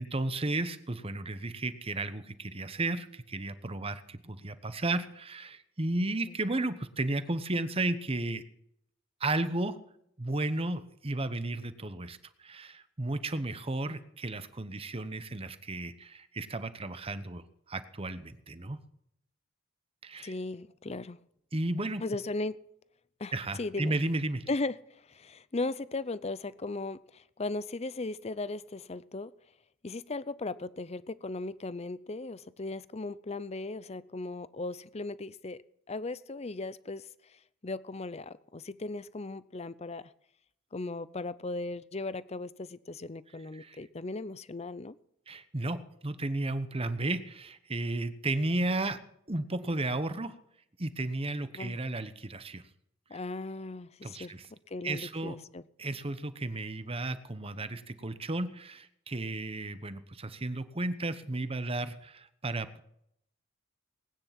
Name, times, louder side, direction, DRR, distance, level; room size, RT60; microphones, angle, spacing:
voice 1, 0.0-8.4 9.2-9.8 10.2-17.4 17.7-18.8 20.0-20.3 21.5-22.0 23.3-24.4 43.5-43.8 45.3-49.0 49.3-50.4 50.8-52.6 53.1-53.2 54.0-54.5 54.8-55.4 55.8-62.8, right 2 dB, 30° right, 12 dB, 1.0 m, -33 dB
voice 2, 20.2-21.2 22.0-22.6 23.2-23.3 23.6-23.9 24.5-24.7 25.1-29.3 29.8-35.6 35.9-37.1 37.6-40.1 40.7-45.0 51.5-51.8 53.1-54.3 54.7-55.6, left 2 dB, 30° left, 17 dB, 0.6 m, -37 dB
19.5 x 9.8 x 5.9 m, 0.74 s
head